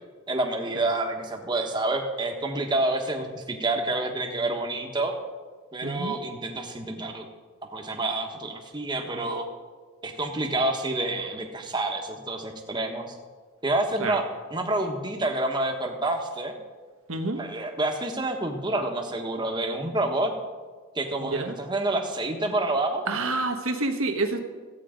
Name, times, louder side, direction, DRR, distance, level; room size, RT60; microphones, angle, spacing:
voice 1, 0.3-5.1 5.7-7.3 7.7-9.4 10.0-13.2 13.6-14.2 14.5-16.5 17.4-20.3 20.9-23.0, right 2 dB, 20° right, 3 dB, 1.2 m, -28 dB
voice 2, 5.8-6.1 14.0-14.2 17.1-17.4 21.2-21.6 23.1-24.4, right 3 dB, 75° right, 5 dB, 1.3 m, -28 dB
14.0 x 8.5 x 5.1 m, 1.4 s
head